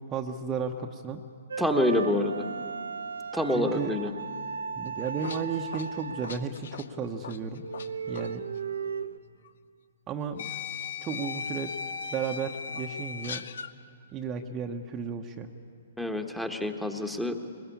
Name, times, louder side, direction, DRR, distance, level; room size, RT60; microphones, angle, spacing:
voice 1, 0.1-1.2 3.5-3.9 4.8-7.6 8.1-8.4 10.1-10.5 11.0-11.7 12.1-13.4 14.1-15.5, right 6 dB, 25° right, 3 dB, 1.1 m, -34 dB
sound 1, 1.5-6.6 7.0-7.2 7.6-9.2, right 5 dB, 75° right, 0.9 m, -36 dB
voice 2, 1.6-2.4 3.3-4.1 16.0-17.4, left 1 dB, ahead, 5 dB, 1.5 m, -27 dB
sound 2, 4.9-7.9 8.1-8.3 9.4-9.5 10.4-13.7, left 6 dB, 65° left, 0.8 m, -38 dB
21.5 x 20.5 x 8.6 m, 2.3 s
figure-of-eight pair, 125°, 0 cm